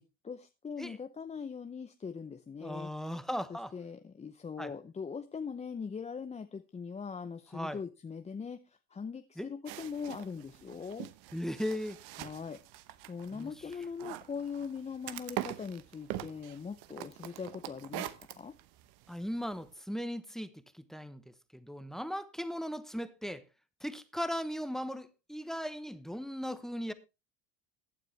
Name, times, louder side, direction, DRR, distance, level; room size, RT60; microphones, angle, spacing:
voice 1, 0.0-2.9 3.5-11.1 12.2-12.6 13.1-18.5, left 6 dB, 15° left, 0.6 m, -41 dB
voice 2, 2.6-3.7 4.6-4.7 7.5-7.8 9.4-9.5 11.3-12.0 13.3-13.5 19.1-23.4 23.8-26.9, equal, ahead, 1.0 m, -38 dB
sound 1, 9.7-19.7, right 14 dB, 70° right, 1.1 m, -44 dB
15.0 x 9.3 x 3.3 m
supercardioid pair, 100°, 40 cm